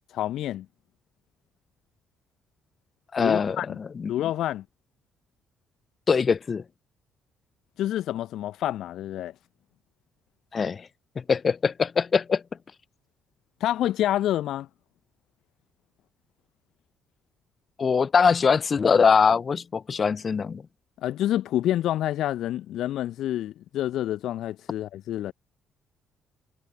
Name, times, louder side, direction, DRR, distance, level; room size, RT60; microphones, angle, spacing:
voice 1, 0.1-0.6 3.2-3.8 4.1-4.6 7.8-9.3 13.6-14.7 21.0-25.3, left 12 dB, 60° left, 1.3 m, -28 dB
voice 2, 3.1-4.1 6.1-6.6 10.5-10.9 11.2-12.4 17.8-20.6, left 5 dB, 40° left, 0.9 m, -22 dB
figure-of-eight pair, 45°, 0 cm